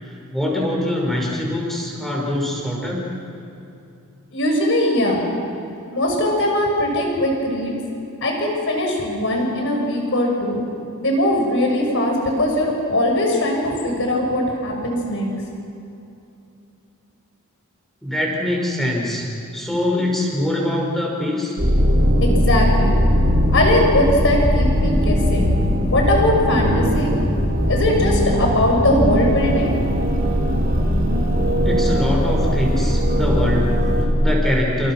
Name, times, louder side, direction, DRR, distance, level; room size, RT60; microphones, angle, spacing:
voice 1, 0.3-3.1 18.0-19.3 19.5-21.6 31.6-34.9, left 1 dB, ahead, -2 dB, 5.8 m, -23 dB
voice 2, 4.3-5.3 5.9-7.7 8.2-10.6 11.0-15.3 22.2-23.0 23.5-25.5 25.9-27.1 27.7-29.7, left 1 dB, 60° left, 1 dB, 6.4 m, -20 dB
sound 1, 21.6-34.1, equal, 40° right, 4.1 m, -19 dB
29.0 x 28.0 x 6.2 m, 2.7 s
head